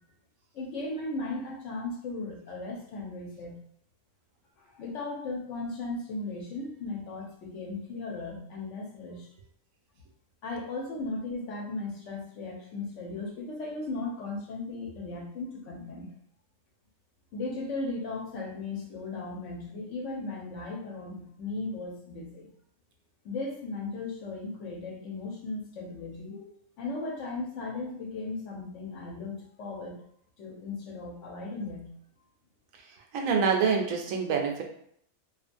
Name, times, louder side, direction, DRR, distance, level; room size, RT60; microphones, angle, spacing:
voice 1, 0.5-3.6 4.7-9.3 10.4-16.1 17.3-22.5 23.2-26.5 26.8-30.0 30.4-31.9, left 3 dB, 70° left, -1 dB, 1.0 m, -36 dB
voice 2, 32.7-34.6, right 6 dB, 80° right, 2 dB, 1.0 m, -27 dB
2.7 x 2.4 x 2.5 m, 0.68 s
omnidirectional pair, 1.4 m